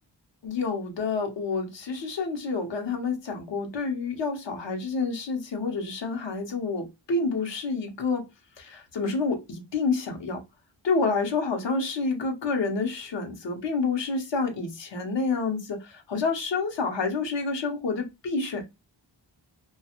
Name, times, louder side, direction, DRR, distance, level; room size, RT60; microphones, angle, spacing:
voice 1, 0.4-8.3 8.6-10.4 10.8-18.6, left 4 dB, 80° left, 0.8 m, -28 dB
2.4 x 2.3 x 2.8 m
wide cardioid pair, 70°, 42 cm